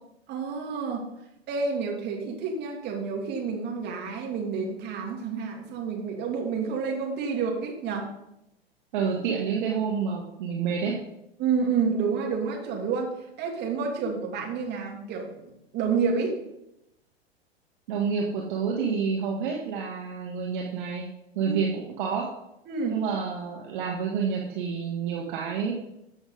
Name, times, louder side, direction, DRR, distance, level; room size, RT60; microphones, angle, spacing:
voice 1, 0.3-1.1 1.5-8.1 11.4-13.1 13.4-15.3 15.7-16.4 21.5-21.6 22.7-23.0, right 5 dB, 35° right, 0 dB, 2.8 m, -29 dB
voice 2, 8.9-11.0 17.9-21.1 21.3-22.3 22.9-25.7, right 6 dB, 50° right, -1 dB, 1.7 m, -28 dB
13.5 x 7.1 x 3.9 m, 0.86 s
figure-of-eight pair, 95°, 31 cm